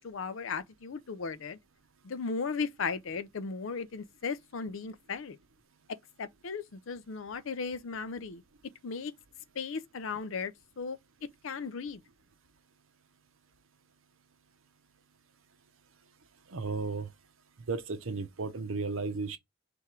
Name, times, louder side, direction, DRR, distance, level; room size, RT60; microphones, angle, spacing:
voice 1, 0.0-1.6 2.0-5.4 6.2-8.4 8.8-9.1 9.5-11.0 11.4-12.0, left 5 dB, 75° left, 0.5 m, -36 dB
voice 2, 16.5-17.1 17.7-19.4, right 4 dB, 80° right, 0.8 m, -34 dB
3.5 x 3.4 x 4.3 m
head